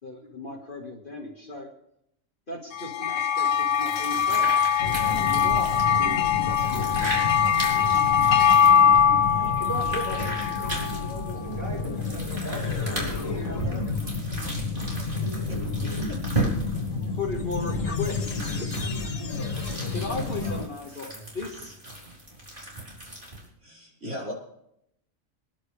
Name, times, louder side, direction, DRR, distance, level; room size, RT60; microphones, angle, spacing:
voice 1, 0.0-1.7 2.5-7.2 7.7-8.0 17.2-21.8, left 3 dB, 40° left, 0 dB, 1.9 m, -37 dB
sound 1, 2.7-11.4, left 8 dB, 85° left, 1.3 m, -22 dB
sound 2, 3.5-23.5, right 1 dB, 40° right, 4.2 m, -37 dB
sound 3, 4.8-20.6, left 3 dB, 70° left, 2.0 m, -31 dB
voice 2, 9.4-13.8, equal, 10° left, -2 dB, 3.0 m, -39 dB
voice 3, 14.9-15.6 16.1-16.2 20.9-21.0 23.6-24.3, equal, 60° right, -5 dB, 5.6 m, -39 dB
26.5 x 10.5 x 3.4 m, 0.77 s
omnidirectional pair, 1.4 m